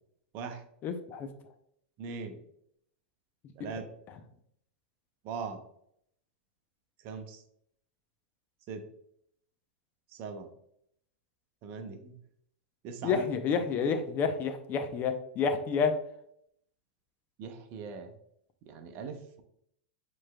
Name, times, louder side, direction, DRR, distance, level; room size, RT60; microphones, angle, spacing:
voice 1, 0.8-1.3 3.7-3.8 4.1-4.2 13.0-15.9, left 6 dB, 35° left, 8 dB, 0.6 m, -29 dB
voice 2, 2.0-2.3 3.6-3.8 5.3-5.6 7.0-7.4 8.7-8.8 10.2-10.5 11.6-12.1 12.8-13.2 17.4-18.1 18.7-19.4, right 5 dB, 45° right, 7 dB, 0.7 m, -40 dB
7.2 x 3.1 x 2.2 m, 0.71 s
hypercardioid pair, 100°, 5 cm